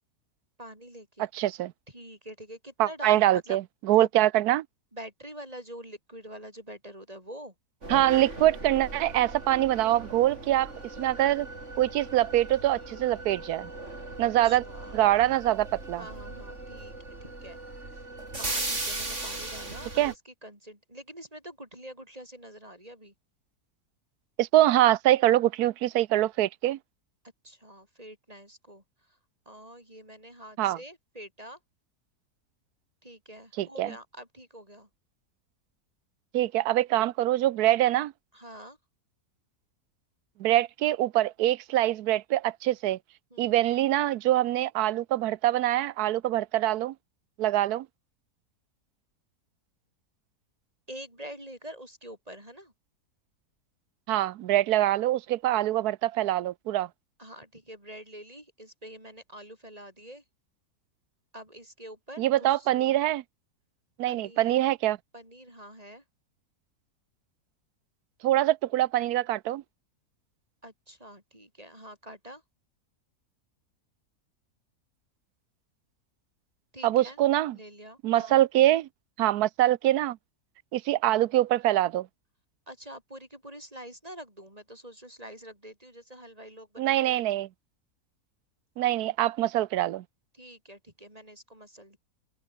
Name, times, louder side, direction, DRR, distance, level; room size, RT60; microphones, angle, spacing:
voice 1, 0.6-1.3 1.9-3.6 3.9-4.1 4.9-7.5 14.2-14.9 16.0-16.9 17.2-17.6 18.4-23.1 27.4-29.2 29.5-31.6 33.0-34.9 38.3-38.8 43.3-43.7 50.9-52.7 57.2-60.2 61.3-62.9 64.1-64.6 65.1-66.0 70.6-72.4 76.7-77.2 77.5-78.4 82.7-87.2 90.3-92.0, right 1 dB, 25° right, 6.3 m, -46 dB
voice 2, 1.3-1.7 2.8-3.6 3.9-4.6 7.9-10.7 11.0-11.5 11.8-13.7 14.2-14.6 14.9-16.0 20.0-20.1 24.4-26.8 30.6-30.8 33.6-33.9 36.3-38.1 40.4-43.0 43.4-46.9 47.4-47.9 54.1-56.9 62.2-63.2 64.0-65.0 68.2-69.6 76.8-77.5 78.0-78.9 79.2-80.2 80.7-82.1 86.8-87.5 88.8-90.0, right 14 dB, 85° right, 1.2 m, -24 dB
sound 1, 7.8-20.1, right 2 dB, 50° right, 5.0 m, -38 dB
open air
omnidirectional pair, 1.6 m